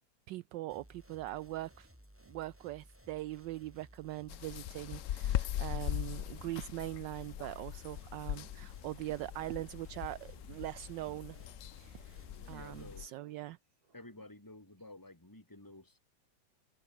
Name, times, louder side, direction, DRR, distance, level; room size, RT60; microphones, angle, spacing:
voice 1, 0.3-1.9 2.3-11.4 11.8-13.6, right 16 dB, 75° right, 1.2 m, -42 dB
sound 1, 0.7-12.9, equal, 5° right, 4.3 m, -59 dB
sound 2, 4.3-13.1, left 12 dB, 75° left, 0.7 m, -40 dB
sound 3, 5.1-5.8 6.1-7.7 8.1-9.7 10.1-11.7 11.9-13.5 13.8-14.5, right 5 dB, 55° right, 2.8 m, -65 dB
voice 2, 12.5-13.1 13.9-16.0, left 2 dB, 10° left, 3.9 m, -52 dB
omnidirectional pair, 2.1 m